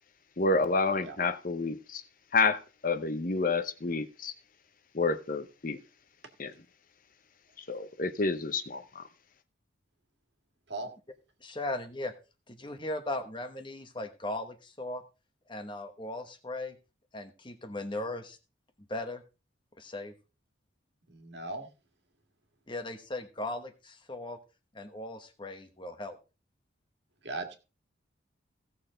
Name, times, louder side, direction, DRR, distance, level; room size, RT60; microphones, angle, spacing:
voice 1, 0.4-2.0 2.3-4.3 4.9-5.8 6.4-6.5 7.7-9.0, left 3 dB, 45° left, 0.8 m, -29 dB
voice 2, 11.4-12.1 12.5-15.0 15.5-16.8 17.1-18.4 18.9-19.2 19.8-20.1 22.7-24.4 24.7-26.2, left 2 dB, 25° left, 1.1 m, -38 dB
voice 3, 21.1-21.7 27.2-27.6, right 2 dB, 60° right, 1.8 m, -38 dB
16.5 x 6.6 x 3.8 m
head